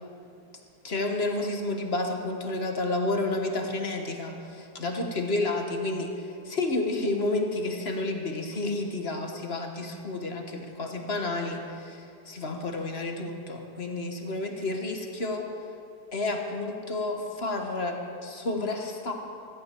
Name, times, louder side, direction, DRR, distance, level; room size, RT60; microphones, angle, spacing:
voice 1, 0.8-15.4 16.1-19.1, left 2 dB, 40° left, 3 dB, 1.4 m, -30 dB
16.5 x 14.5 x 4.6 m, 2.5 s
omnidirectional pair, 1.8 m